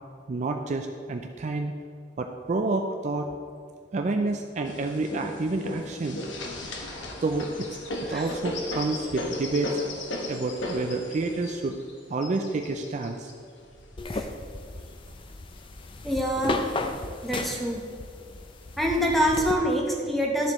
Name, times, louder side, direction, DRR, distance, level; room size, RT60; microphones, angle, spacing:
voice 1, 0.3-1.7 2.2-3.3 3.9-6.2 7.2-7.8 8.1-9.8 10.3-11.8 12.1-13.3, right 3 dB, 40° right, 4 dB, 0.4 m, -29 dB
sound 1, 4.6-14.9 15.6-16.5 16.9-17.0 17.3-18.0 18.8-18.9 19.5-19.9, left 2 dB, 75° left, 1.2 m, -36 dB
sound 2, 14.0-19.5, left 2 dB, 30° left, 0.4 m, -35 dB
voice 2, 16.0-16.6 17.2-17.8 18.8-20.5, equal, ahead, 0 dB, 1.0 m, -25 dB
12.0 x 7.4 x 3.0 m, 2.2 s
head